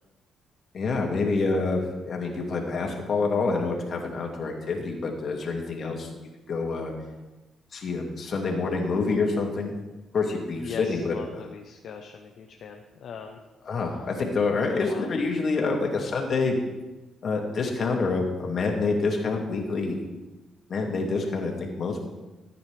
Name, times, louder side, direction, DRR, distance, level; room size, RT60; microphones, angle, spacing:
voice 1, 0.7-6.1 6.5-6.9 7.7-9.7 10.1-11.1 13.7-16.6 17.2-20.0 20.7-22.1, left 3 dB, 50° left, 1 dB, 2.3 m, -27 dB
voice 2, 10.6-13.4 14.7-15.1, left 6 dB, 65° left, 4 dB, 0.8 m, -40 dB
14.5 x 9.5 x 3.4 m, 1.1 s
cardioid pair, 90°, 0 cm